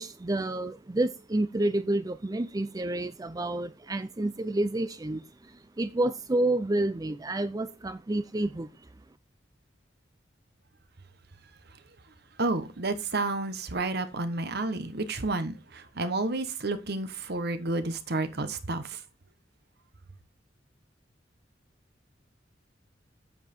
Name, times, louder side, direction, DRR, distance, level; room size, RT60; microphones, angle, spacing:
voice 1, 0.0-8.7, right 1 dB, 20° right, 0.5 m, -29 dB
voice 2, 12.4-18.8, right 2 dB, 60° right, 1.2 m, -30 dB
8.0 x 7.4 x 4.4 m
head